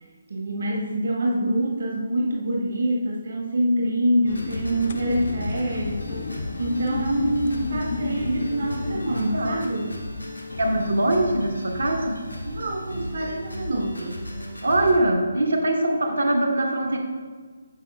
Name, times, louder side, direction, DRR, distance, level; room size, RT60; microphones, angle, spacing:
voice 1, 0.3-6.3 6.6-10.0 12.4-14.2, right 1 dB, 55° right, -2 dB, 1.3 m, -25 dB
sound 1, 4.2-15.0, left 1 dB, 90° left, 1.3 m, -35 dB
sound 2, 4.3-9.3, left 4 dB, 50° left, 0.4 m, -32 dB
voice 2, 9.1-9.5 10.6-12.2 14.6-17.0, right 1 dB, 80° right, 0 dB, 1.4 m, -22 dB
10.5 x 7.1 x 2.3 m, 1.5 s
figure-of-eight pair, 145°, 0 cm